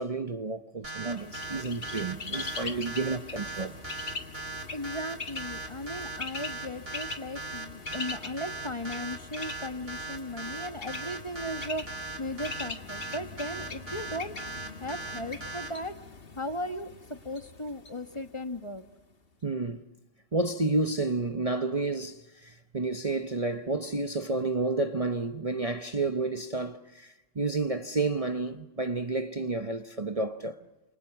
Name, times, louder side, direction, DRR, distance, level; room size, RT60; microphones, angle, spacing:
voice 1, 0.0-3.8 19.4-19.8 20.3-30.6, right 3 dB, 30° right, 0.9 m, -30 dB
sound 1, 0.8-15.7, right 3 dB, 50° right, 3.8 m, -38 dB
Bird, 1.1-18.9, left 4 dB, 50° left, 1.8 m, -42 dB
voice 2, 4.7-14.5 14.8-15.9 16.3-18.8, left 1 dB, 25° left, 1.3 m, -37 dB
30.0 x 28.0 x 6.1 m
omnidirectional pair, 1.3 m